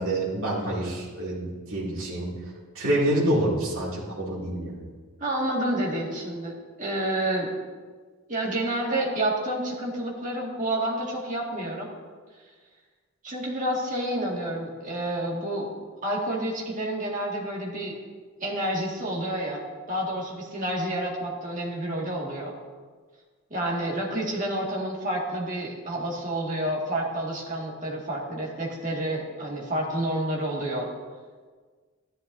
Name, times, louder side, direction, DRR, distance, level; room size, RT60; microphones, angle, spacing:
voice 1, 0.0-4.7, right 1 dB, 65° right, -7 dB, 2.7 m, -27 dB
voice 2, 5.2-6.5 6.8-7.5 8.3-11.9 13.2-15.7 16.0-17.9 18.4-19.6 19.9-22.5 23.5-30.9, right 1 dB, 35° right, -3 dB, 2.1 m, -29 dB
13.0 x 11.0 x 2.7 m, 1.5 s
head